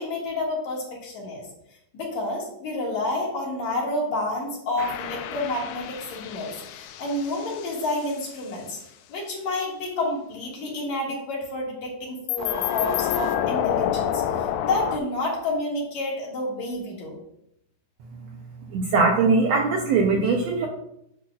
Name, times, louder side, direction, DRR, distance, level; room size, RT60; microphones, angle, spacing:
voice 1, 0.0-1.5 1.9-8.8 9.1-17.2, left 2 dB, 65° left, -3 dB, 3.0 m, -29 dB
sound 1, 4.8-8.3 12.3-15.0, left 10 dB, 80° left, 2.0 m, -28 dB
voice 2, 18.7-20.7, right 4 dB, 75° right, 2 dB, 1.6 m, -21 dB
10.0 x 6.2 x 2.4 m, 0.77 s
omnidirectional pair, 3.6 m